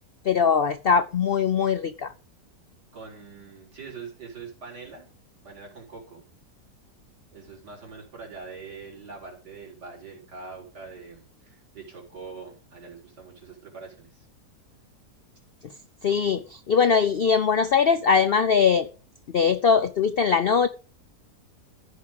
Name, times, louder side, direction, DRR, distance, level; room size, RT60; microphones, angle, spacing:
voice 1, 0.2-2.1 16.0-18.9 19.3-20.7, left 6 dB, 90° left, 0.5 m, -21 dB
voice 2, 2.9-5.1 5.4-6.2 7.3-14.3, right 4 dB, 75° right, 4.5 m, -43 dB
14.5 x 4.9 x 5.3 m
omnidirectional pair, 1.8 m